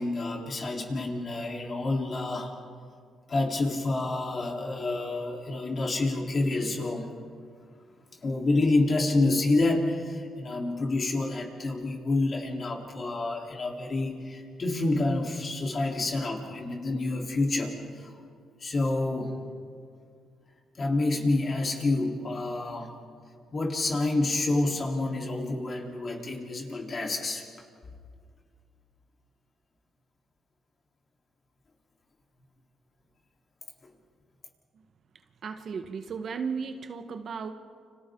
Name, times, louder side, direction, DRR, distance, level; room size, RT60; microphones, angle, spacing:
voice 1, 0.0-2.5 3.3-7.1 8.2-18.1 18.6-19.4 20.8-22.9 23.5-27.4, left 2 dB, 40° left, 0 dB, 3.9 m, -28 dB
voice 2, 35.4-37.5, right 5 dB, 55° right, 7 dB, 1.4 m, -35 dB
30.0 x 26.5 x 3.9 m, 2.2 s
cardioid pair, 90°, 0 cm